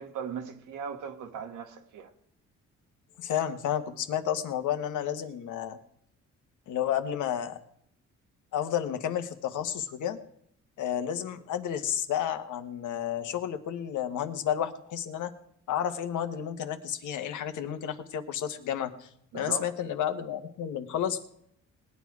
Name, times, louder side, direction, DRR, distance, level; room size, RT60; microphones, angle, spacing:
voice 1, 0.0-2.1 19.3-19.7, right 7 dB, 85° right, 1.8 m, -38 dB
voice 2, 3.2-5.8 6.7-7.6 8.5-10.2 10.8-15.3 15.7-21.2, left 10 dB, 80° left, 1.4 m, -31 dB
19.5 x 9.6 x 4.8 m
cardioid pair, 90°, 30 cm